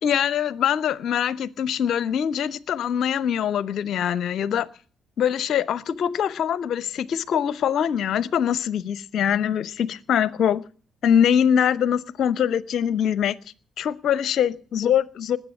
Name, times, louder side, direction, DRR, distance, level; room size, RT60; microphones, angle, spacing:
voice 1, 0.0-4.7 5.2-10.6 11.0-13.4 13.8-15.4, left 9 dB, 60° left, 0.8 m, -23 dB
20.0 x 8.3 x 8.5 m
hypercardioid pair, 45°, 0 cm